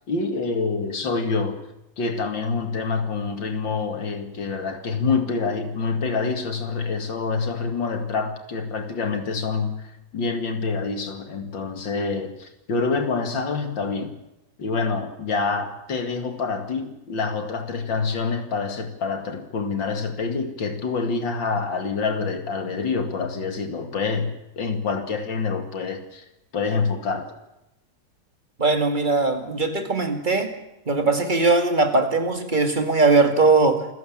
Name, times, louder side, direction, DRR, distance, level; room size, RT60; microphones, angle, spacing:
voice 1, 0.1-1.6 2.0-14.1 14.6-26.2 26.5-27.3, left 4 dB, 90° left, 7 dB, 3.0 m, -26 dB
voice 2, 28.6-30.5 30.9-33.9, right 3 dB, 25° right, 6 dB, 2.4 m, -20 dB
28.0 x 15.5 x 7.4 m, 0.92 s
omnidirectional pair, 2.0 m